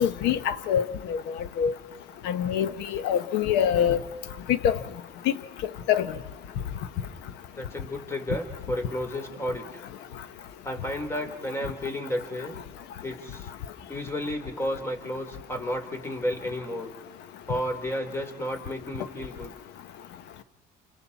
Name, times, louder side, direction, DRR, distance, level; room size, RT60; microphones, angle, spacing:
voice 1, 0.0-1.7 2.2-4.0 4.5-4.8 5.9-6.1, left 9 dB, 90° left, 1.1 m, -25 dB
voice 2, 7.6-9.8 10.6-12.5 13.0-13.5 13.9-16.9 17.5-19.5, equal, 15° left, 3.5 m, -32 dB
28.5 x 27.5 x 4.2 m
cardioid pair, 110°, 17 cm